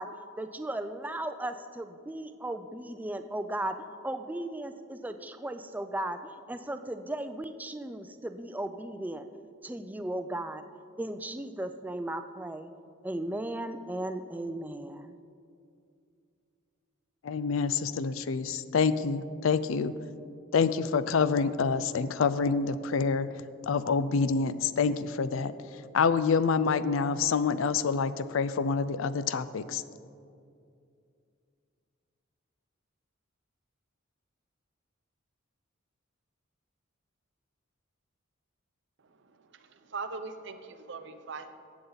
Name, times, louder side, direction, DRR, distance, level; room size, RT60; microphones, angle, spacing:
voice 1, 0.0-9.3 9.6-10.6 11.0-12.7 13.0-15.2, right 1 dB, 10° right, 9 dB, 0.3 m, -36 dB
voice 2, 17.2-19.9 20.5-23.3 23.6-29.8, left 5 dB, 75° left, 14 dB, 0.4 m, -27 dB
voice 3, 39.0-41.5, right 4 dB, 60° right, 9 dB, 0.7 m, -41 dB
14.5 x 8.2 x 3.9 m, 2.4 s
head